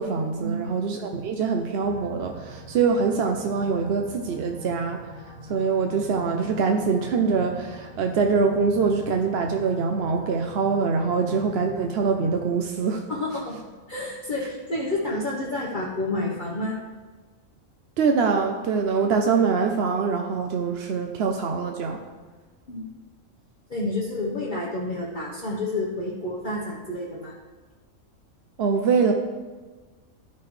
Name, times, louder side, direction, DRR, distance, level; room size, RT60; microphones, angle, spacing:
voice 1, 0.0-5.0 5.5-13.0 18.0-22.0 28.6-29.1, right 5 dB, 60° right, 3 dB, 0.7 m, -24 dB
sound 1, 1.8-12.4, left 1 dB, 25° right, 1.9 m, -42 dB
voice 2, 13.1-16.8 22.7-22.9 23.7-27.3, left 2 dB, 40° left, -4 dB, 1.1 m, -29 dB
12.5 x 5.7 x 3.2 m, 1.3 s
omnidirectional pair, 1.5 m